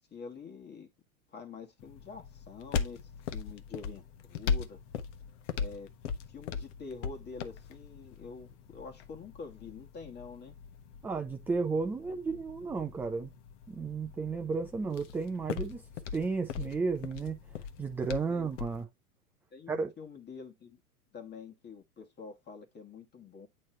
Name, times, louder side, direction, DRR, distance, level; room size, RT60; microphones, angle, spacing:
voice 1, 0.1-0.9 1.3-3.0 3.3-4.8 5.6-5.9 6.3-10.5 18.3-18.5 19.5-20.8 21.1-23.5, left 5 dB, 25° left, 1.6 m, -46 dB
sound 1, 1.8-18.8, left 6 dB, 55° left, 1.1 m, -40 dB
voice 2, 11.0-13.3 13.7-15.8 16.1-17.4 17.8-18.9 19.7-19.9, right 4 dB, 5° right, 0.3 m, -33 dB
8.7 x 3.2 x 4.2 m
hypercardioid pair, 105°, 44 cm